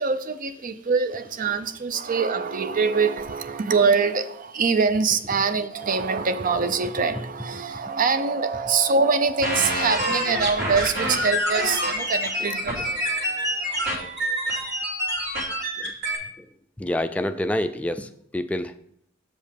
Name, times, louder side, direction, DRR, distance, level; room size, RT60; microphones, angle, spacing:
voice 1, 0.0-14.0 15.4-15.5, right 5 dB, 45° right, 0.5 m, -24 dB
sound 1, 9.4-16.2, equal, 60° right, 2.7 m, -26 dB
voice 2, 16.8-18.7, left 1 dB, 5° left, 0.4 m, -27 dB
7.5 x 5.3 x 5.0 m
head